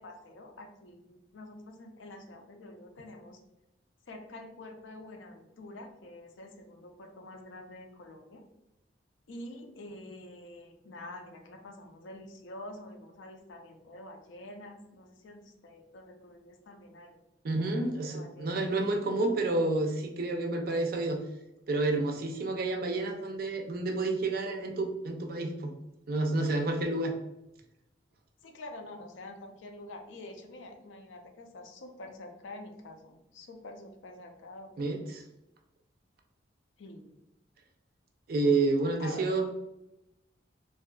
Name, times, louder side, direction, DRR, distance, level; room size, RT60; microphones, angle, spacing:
voice 1, 0.0-3.4 4.1-8.5 9.3-17.2 17.5-18.6 28.4-35.1 36.8-37.2 39.0-39.3, left 1 dB, 85° left, 4 dB, 0.4 m, -47 dB
voice 2, 17.4-21.2 21.7-25.7 26.1-27.1 34.8-35.2 38.3-39.5, right 2 dB, 50° right, 3 dB, 0.4 m, -29 dB
2.7 x 2.3 x 2.2 m, 0.89 s
head